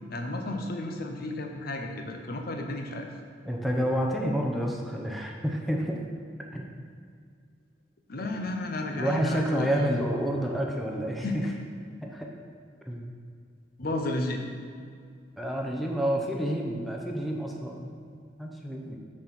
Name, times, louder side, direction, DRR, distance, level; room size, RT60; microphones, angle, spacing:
voice 1, 0.1-3.1 8.1-9.9 11.2-11.4 13.8-14.4, left 2 dB, 50° left, 3 dB, 0.7 m, -32 dB
voice 2, 3.4-6.0 6.5-6.7 8.3-8.4 9.0-11.5 12.0-12.3 12.9-13.1 15.4-19.0, equal, ahead, 0 dB, 0.7 m, -29 dB
6.1 x 4.3 x 6.0 m, 2.2 s
head